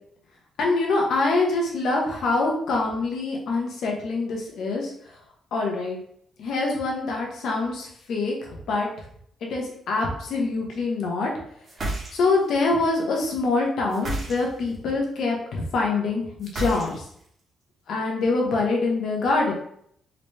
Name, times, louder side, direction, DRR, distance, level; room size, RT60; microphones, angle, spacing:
voice 1, 0.6-4.9 5.5-6.0 6.4-8.9 9.5-11.3 12.1-17.0 17.9-19.5, left 3 dB, 70° left, -1 dB, 1.0 m, -25 dB
sound 1, 11.6-12.5 13.9-14.8 16.4-17.3, right 1 dB, 40° right, 1.2 m, -31 dB
4.0 x 2.1 x 3.2 m, 0.68 s
cardioid pair, 100°, 0 cm